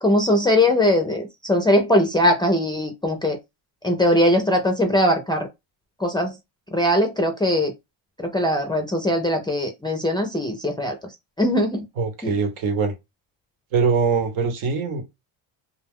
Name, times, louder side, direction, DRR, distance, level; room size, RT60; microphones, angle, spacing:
voice 1, 0.0-3.4 3.8-5.5 6.0-6.3 6.7-7.7 8.2-11.0 11.4-11.9 12.2-12.3, left 1 dB, 10° left, 0.3 m, -20 dB
voice 2, 12.0-12.9 13.7-15.0, right 5 dB, 80° right, 1.0 m, -22 dB
2.3 x 2.2 x 3.4 m
cardioid pair, 115°, 48 cm